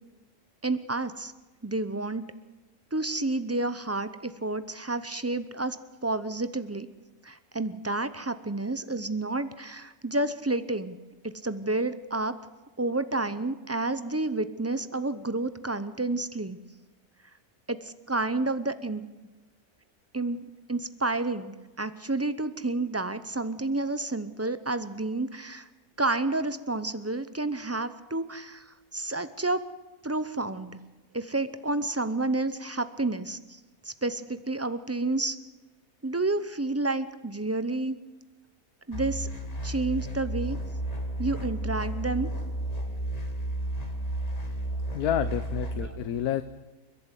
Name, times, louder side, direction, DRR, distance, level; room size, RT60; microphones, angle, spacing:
voice 1, 0.6-1.3 1.6-2.2 2.9-5.8 6.0-6.9 7.2-11.0 11.2-12.4 12.8-16.6 17.7-19.0 20.1-20.4 20.7-25.7 26.0-29.7 30.0-30.7 31.1-33.6 33.8-35.4 36.0-38.0 38.9-39.3 39.6-40.6 41.2-42.3 45.8-46.0, right 2 dB, 25° right, 12 dB, 0.3 m, -30 dB
sound 1, 38.9-45.9, right 1 dB, 25° left, 2.3 m, -32 dB
voice 2, 44.9-46.4, left 10 dB, 75° left, 11 dB, 1.3 m, -29 dB
29.5 x 11.5 x 8.2 m, 1.2 s
omnidirectional pair, 1.6 m